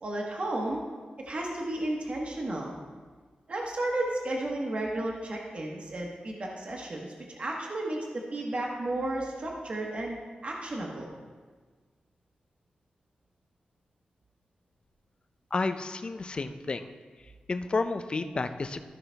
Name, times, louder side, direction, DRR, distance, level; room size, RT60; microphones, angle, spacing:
voice 1, 0.0-0.8 1.2-2.8 3.5-11.1, right 1 dB, 45° right, -1 dB, 1.2 m, -33 dB
voice 2, 15.5-16.9 17.5-18.9, left 3 dB, 35° left, 9 dB, 0.4 m, -31 dB
13.5 x 5.7 x 3.4 m, 1.5 s
wide cardioid pair, 135°, 3 cm